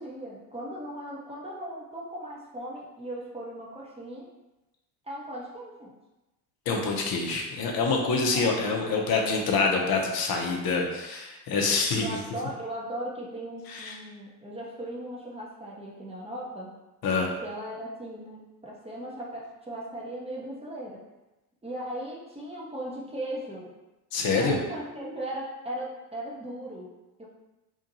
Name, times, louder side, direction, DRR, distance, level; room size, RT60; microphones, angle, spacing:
voice 1, 0.0-4.3 5.0-5.9 8.1-8.5 12.0-16.7 17.4-21.0 21.6-23.7 24.4-26.9 27.2-27.3, right 1 dB, 10° right, -4 dB, 0.9 m, -38 dB
voice 2, 6.7-12.1 13.7-14.0 17.0-17.3 24.1-24.6, left 4 dB, 45° left, 1 dB, 0.7 m, -26 dB
2.9 x 2.5 x 2.7 m, 1.0 s
hypercardioid pair, 55°, 49 cm